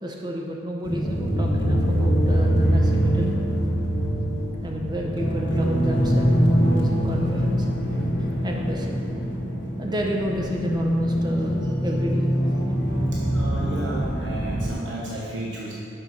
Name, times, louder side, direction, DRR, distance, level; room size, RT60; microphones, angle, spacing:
voice 1, 0.0-3.4 4.6-6.3 6.7-7.7 8.4-9.0 9.8-12.3, equal, 25° right, 0 dB, 0.7 m, -31 dB
sound 1, 0.8-14.8, equal, 85° left, 1.7 m, -23 dB
voice 2, 13.1-15.7, right 1 dB, 80° right, -5 dB, 1.2 m, -32 dB
6.5 x 6.1 x 5.6 m, 2.5 s
head